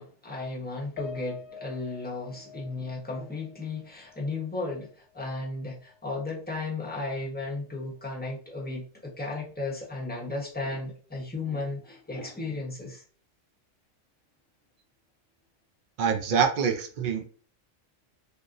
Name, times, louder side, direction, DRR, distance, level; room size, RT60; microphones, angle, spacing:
voice 1, 0.0-13.0, left 3 dB, 10° left, -2 dB, 0.6 m, -35 dB
Piano, 1.0-5.5 5.8-6.0 6.4-6.5, left 5 dB, 85° left, 1.0 m, -46 dB
voice 2, 16.0-17.3, right 6 dB, 75° right, 4 dB, 0.4 m, -25 dB
3.5 x 2.5 x 2.5 m, 0.40 s
omnidirectional pair, 1.4 m